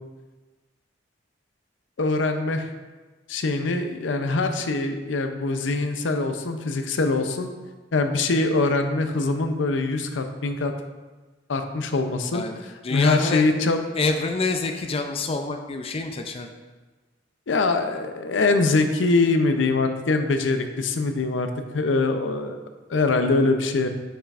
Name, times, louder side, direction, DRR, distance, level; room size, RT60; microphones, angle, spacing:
voice 1, 2.0-2.7 3.3-7.5 7.9-10.7 11.5-13.8 17.5-22.6 22.9-23.9, left 3 dB, 80° left, 7 dB, 0.6 m, -23 dB
voice 2, 12.3-13.5 14.0-16.5, left 3 dB, 30° left, 5 dB, 0.4 m, -27 dB
8.7 x 5.6 x 2.5 m, 1.3 s
head